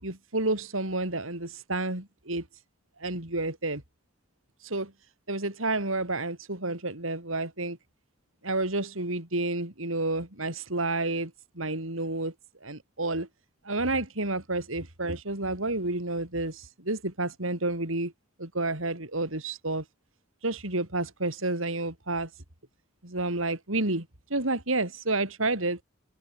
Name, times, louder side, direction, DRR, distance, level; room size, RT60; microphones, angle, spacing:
voice 1, 0.0-2.4 3.0-3.8 4.6-4.9 5.3-7.8 8.4-12.3 12.6-13.3 13.6-18.1 18.4-19.8 20.4-22.3 23.0-25.8, right 2 dB, 80° right, 4.9 m, -30 dB
head